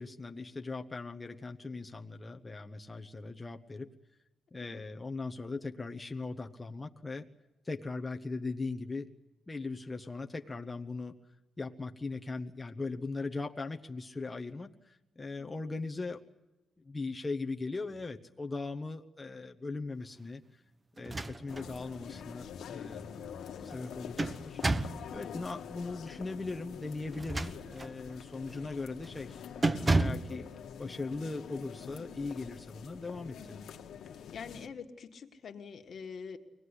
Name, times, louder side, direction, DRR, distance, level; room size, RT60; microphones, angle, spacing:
voice 1, 0.0-3.9 4.5-7.3 7.6-9.1 9.5-11.2 11.6-16.2 16.8-20.6 21.0-23.3 23.6-24.6 25.1-30.5 30.8-33.6, left 3 dB, 20° left, 3 dB, 1.1 m, -39 dB
sound 1, 21.0-21.7 22.2-22.3 23.7-25.1 27.1-28.0 28.5-28.7 29.0-29.3 29.6-30.3, right 2 dB, 25° right, 1.1 m, -31 dB
sound 2, 21.5-34.7, left 8 dB, 85° left, 1.5 m, -46 dB
voice 2, 33.4-33.7 34.3-36.4, left 6 dB, 60° left, 5 dB, 1.8 m, -46 dB
24.5 x 18.5 x 9.9 m, 1.0 s
cardioid pair, 105°, 0 cm